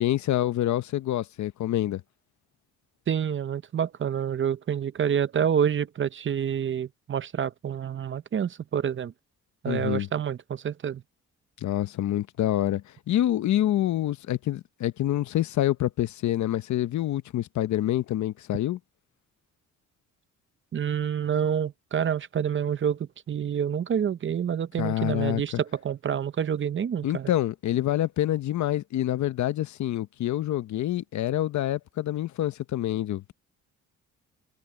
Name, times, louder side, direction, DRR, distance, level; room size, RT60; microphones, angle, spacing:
voice 1, 0.0-2.0 9.7-10.1 11.6-18.8 24.8-25.4 27.0-33.3, left 13 dB, 70° left, 0.9 m, -27 dB
voice 2, 3.1-9.1 9.6-11.0 20.7-27.3, right 8 dB, 40° right, 0.7 m, -28 dB
cardioid pair, 90°, 30 cm